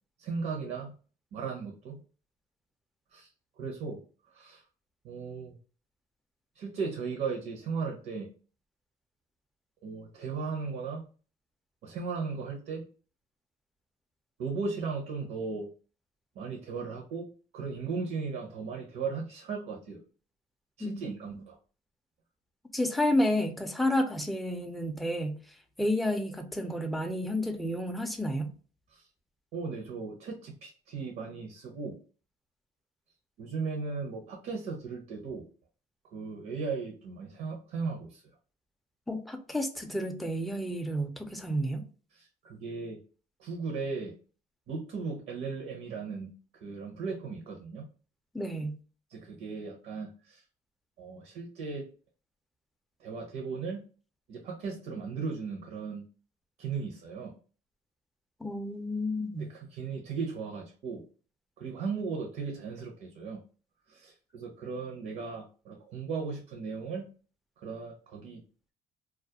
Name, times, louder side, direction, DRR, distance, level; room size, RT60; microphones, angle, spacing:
voice 1, 0.2-0.9 1.3-2.0 3.1-3.3 3.6-4.0 4.3-4.6 5.0-5.6 6.5-8.3 9.8-11.0 11.8-12.8 14.4-15.7 16.3-17.3 17.5-20.0 20.8-21.6 28.9-29.1 29.5-32.0 33.4-35.4 36.1-38.2 42.2-43.0 43.4-44.1 44.7-46.3 46.6-47.9 49.1-50.4 51.0-51.9 53.0-53.8 54.3-56.0 56.6-57.3 59.4-61.0 61.6-63.4 63.9-67.1 67.6-68.4, right 4 dB, 65° right, 0.6 m, -36 dB
voice 2, 20.8-21.1 22.7-25.4 25.8-28.5 39.1-41.8 48.3-48.8 58.4-59.5, left 1 dB, ahead, 0.4 m, -30 dB
2.3 x 2.0 x 2.8 m
cardioid pair, 110°, 17 cm